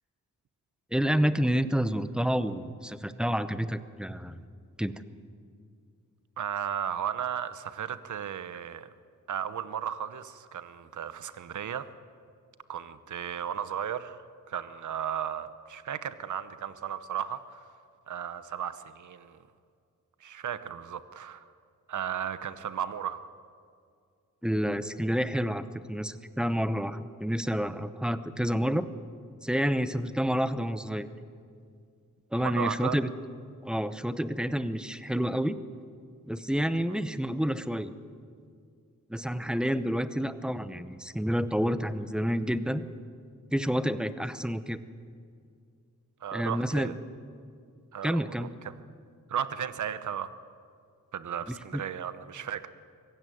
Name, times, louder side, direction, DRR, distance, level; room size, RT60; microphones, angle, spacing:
voice 1, 0.9-4.4 4.8-4.9 24.4-28.9 29.4-31.1 32.3-33.1 33.6-35.6 36.3-37.9 39.1-42.8 43.5-44.8 46.3-46.9 48.0-48.5 51.5-51.8, equal, 5° right, 12 dB, 0.7 m, -29 dB
voice 2, 6.4-8.9 9.3-11.9 12.7-14.2 14.5-17.7 18.1-19.4 20.2-21.5 21.9-23.2 32.4-33.0 36.9-37.0 46.2-46.9 47.9-48.7 49.3-50.3 51.1-52.7, right 9 dB, 65° right, 13 dB, 1.0 m, -35 dB
24.5 x 16.0 x 9.4 m, 2.3 s
wide cardioid pair, 150°, 32 cm